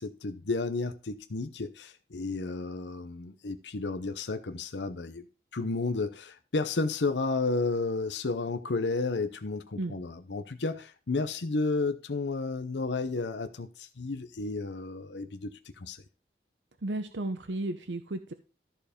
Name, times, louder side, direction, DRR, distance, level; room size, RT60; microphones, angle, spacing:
voice 1, 0.0-5.2 5.5-16.0, left 3 dB, 90° left, 0.8 m, -32 dB
voice 2, 16.8-18.3, right 2 dB, 90° right, 0.8 m, -33 dB
13.5 x 4.6 x 5.1 m
head